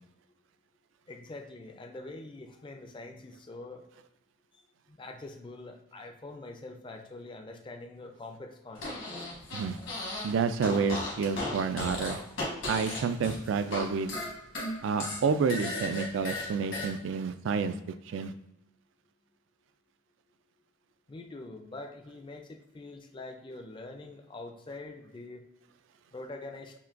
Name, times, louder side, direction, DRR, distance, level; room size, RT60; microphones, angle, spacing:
voice 1, 1.1-3.9 4.9-9.0 21.1-25.4 26.1-26.7, left 2 dB, 25° left, 4 dB, 0.4 m, -44 dB
Fart, 8.7-10.3 10.6-13.8 14.1-16.9, left 2 dB, 70° left, 1.2 m, -35 dB
voice 2, 10.2-12.2 12.7-14.2 14.8-17.8 18.1-18.3, right 5 dB, 70° right, 11 dB, 0.3 m, -29 dB
5.7 x 2.2 x 2.5 m, 0.86 s
head